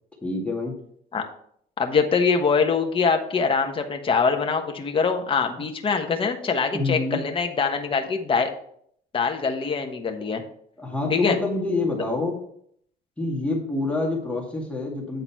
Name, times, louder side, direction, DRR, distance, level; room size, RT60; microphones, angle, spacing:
voice 1, 0.2-0.8 6.7-7.2 10.8-12.4 13.2-15.2, left 2 dB, 5° left, -2 dB, 2.1 m, -27 dB
voice 2, 1.8-8.5 9.1-10.4 11.1-11.4, left 5 dB, 30° left, 4 dB, 1.2 m, -23 dB
9.0 x 3.9 x 5.7 m, 0.66 s
cardioid pair, 110°, 17 cm